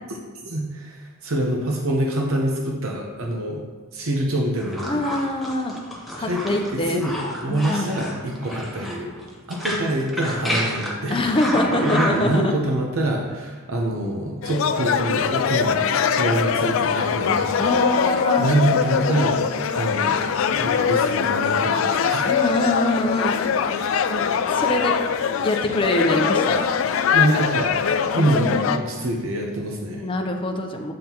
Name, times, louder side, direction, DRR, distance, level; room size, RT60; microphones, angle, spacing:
voice 1, 0.4-3.6 3.9-5.0 6.2-7.2 7.4-9.1 9.5-11.2 11.8-15.8 16.2-18.0 18.4-19.4 19.7-22.3 23.8-23.9 27.1-27.8 28.1-30.0, right 1 dB, 85° right, 0 dB, 0.8 m, -25 dB
sound 1, 4.6-12.4, equal, ahead, 0.9 m, -29 dB
voice 2, 4.9-5.7 6.1-7.0 7.5-7.9 11.1-12.5 17.6-18.5 22.2-23.3 24.1-24.2 24.5-25.0 25.4-26.7 28.2-28.7 30.0-30.9, left 1 dB, 25° left, 3 dB, 0.6 m, -24 dB
sound 2, 14.4-28.8, left 7 dB, 70° left, 0.3 m, -22 dB
7.6 x 5.5 x 2.9 m, 1.4 s
head